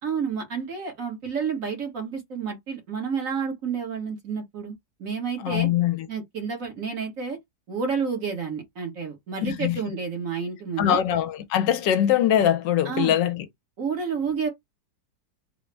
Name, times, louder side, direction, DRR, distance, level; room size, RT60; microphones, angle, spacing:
voice 1, 0.0-4.7 5.0-5.7 6.1-7.4 7.7-11.0 12.8-13.2 13.8-14.5, right 6 dB, 50° right, 1.4 m, -30 dB
voice 2, 5.4-6.1 9.4-9.8 10.8-13.5, left 10 dB, 85° left, 1.3 m, -22 dB
3.8 x 2.1 x 3.3 m
omnidirectional pair, 1.9 m